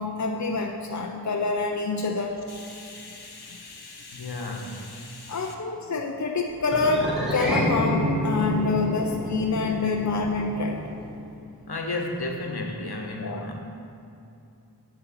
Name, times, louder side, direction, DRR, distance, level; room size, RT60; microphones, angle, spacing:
voice 1, 0.0-2.4 5.3-10.8 13.2-13.5, left 3 dB, 45° left, 2 dB, 0.7 m, -27 dB
voice 2, 2.5-5.5 11.7-13.6, left 2 dB, 65° left, 2 dB, 1.4 m, -34 dB
sound 1, 6.7-11.2, equal, ahead, 2.2 m, -28 dB
8.3 x 6.7 x 7.0 m, 2.7 s
wide cardioid pair, 45°, 41 cm